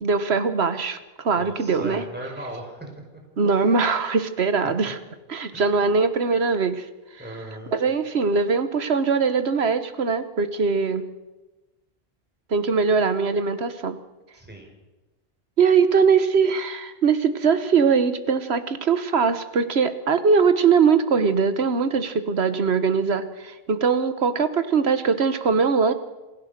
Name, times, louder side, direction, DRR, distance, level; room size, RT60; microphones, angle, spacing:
voice 1, 0.0-2.0 3.4-5.0 5.3-6.9 7.7-11.0 12.5-14.0 15.6-25.9, right 5 dB, 75° right, 11 dB, 1.5 m, -21 dB
voice 2, 1.3-2.9 3.5-3.9 5.5-5.7 7.2-7.7 14.3-14.7, right 1 dB, 10° right, 1 dB, 4.7 m, -38 dB
27.0 x 16.0 x 6.7 m, 1.1 s
omnidirectional pair, 1.1 m